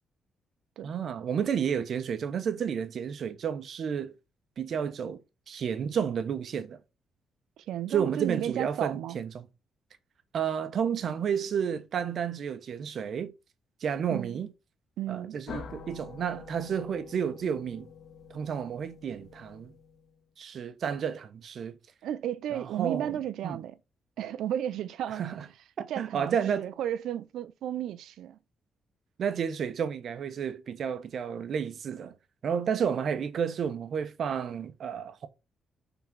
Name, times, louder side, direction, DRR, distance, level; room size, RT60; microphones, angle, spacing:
voice 1, 0.8-4.1 4.6-5.2 5.5-6.8 7.9-9.5 10.3-13.3 13.8-14.5 15.1-17.9 18.3-19.7 20.4-21.8 22.5-23.2 23.4-23.6 25.1-25.5 25.8-26.7 29.2-32.2 32.4-35.3, right 7 dB, 55° right, 1.0 m, -31 dB
voice 2, 7.6-9.2 14.1-14.4 15.0-15.4 22.0-23.8 24.2-25.3 25.9-28.4 32.9-33.0, right 11 dB, 85° right, 0.7 m, -33 dB
sound 1, 15.5-20.2, left 6 dB, 60° left, 1.2 m, -46 dB
5.9 x 4.0 x 6.0 m
cardioid pair, 115°, 0 cm